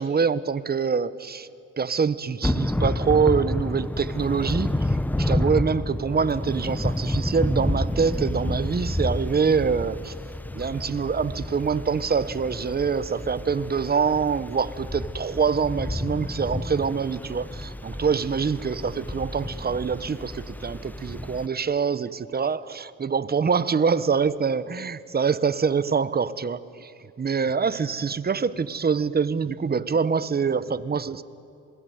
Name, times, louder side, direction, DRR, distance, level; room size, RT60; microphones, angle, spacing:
voice 1, 0.0-1.5 1.8-10.1 10.5-26.9 27.2-31.2, right 6 dB, 30° right, 1.1 m, -25 dB
Thunder / Rain, 2.4-21.5, left 1 dB, 5° left, 0.7 m, -30 dB
27.0 x 21.0 x 9.5 m
cardioid pair, 90°, 30 cm